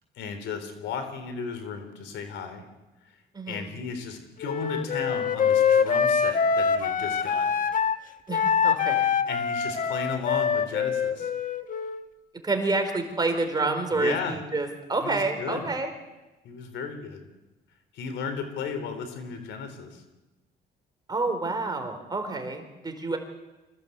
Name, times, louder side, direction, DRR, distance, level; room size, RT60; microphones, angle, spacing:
voice 1, 0.2-2.7 3.5-7.6 9.3-11.3 13.9-14.4 15.0-15.7 16.4-17.3 17.9-20.0, left 5 dB, 85° left, 8 dB, 3.8 m, -35 dB
Wind instrument woodwind instrument, 4.4-8.0 8.3-12.1, left 6 dB, 45° left, 1.5 m, -24 dB
voice 2, 8.3-9.1 12.4-15.9 21.1-23.2, right 3 dB, 20° right, 6 dB, 4.2 m, -28 dB
25.0 x 16.5 x 8.2 m, 1.1 s
cardioid pair, 110°, 18 cm